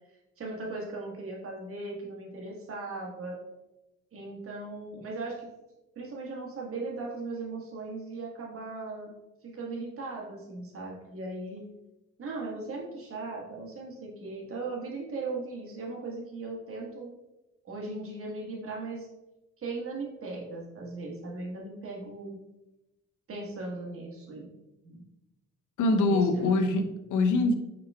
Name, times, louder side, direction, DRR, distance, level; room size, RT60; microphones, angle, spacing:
voice 1, 0.4-3.4 4.1-5.5 5.9-9.1 9.4-11.6 12.2-17.1 17.6-19.1 19.6-22.4 23.3-24.5 24.8-25.0 26.0-26.4, right 3 dB, 50° right, 1.3 m, -38 dB
voice 2, 25.8-27.5, left 2 dB, 80° left, 0.6 m, -24 dB
5.0 x 4.5 x 2.3 m
cardioid pair, 90°, 30 cm